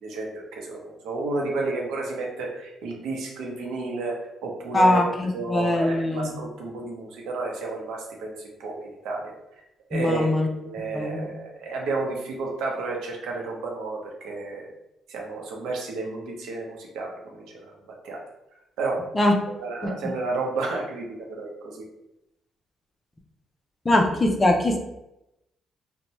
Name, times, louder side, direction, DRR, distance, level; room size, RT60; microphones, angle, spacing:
voice 1, 0.0-5.0 5.3-9.3 9.9-14.7 15.1-17.8 18.0-18.2 18.8-19.0 19.6-21.1 21.4-21.8, right 3 dB, 85° right, 0 dB, 0.7 m, -31 dB
voice 2, 4.7-6.4 9.9-10.5 10.9-11.3 19.1-19.3 23.8-24.8, left 1 dB, 25° left, 3 dB, 0.5 m, -21 dB
2.7 x 2.1 x 3.0 m, 0.88 s
cardioid pair, 90°, 0 cm